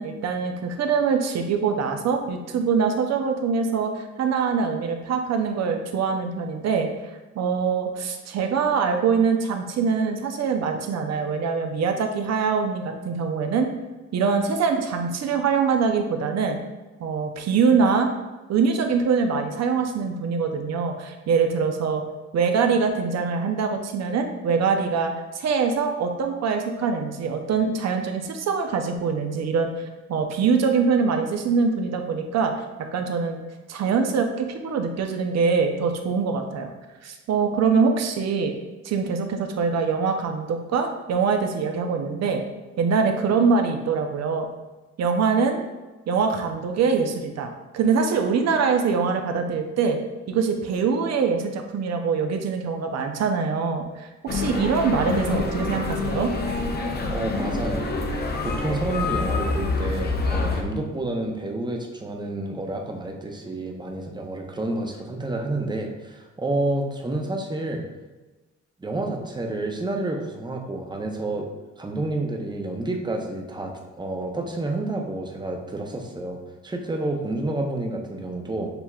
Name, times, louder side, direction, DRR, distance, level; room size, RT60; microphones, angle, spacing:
voice 1, 0.0-6.9 7.4-13.7 14.1-16.6 17.0-18.1 18.5-22.0 22.3-29.7 30.1-32.5 32.9-33.4 33.7-36.7 37.0-38.5 38.8-42.4 42.8-44.5 45.0-45.6 46.1-50.0 50.3-56.3, right 5 dB, 60° right, 4 dB, 0.6 m, -23 dB
sound 1, 54.3-60.6, left 3 dB, 35° left, 0.6 m, -26 dB
voice 2, 57.1-57.9 58.2-67.8 68.8-71.5 71.8-78.7, right 2 dB, 15° right, 2 dB, 0.6 m, -29 dB
6.8 x 2.9 x 2.3 m, 1.2 s
cardioid pair, 90°, 30 cm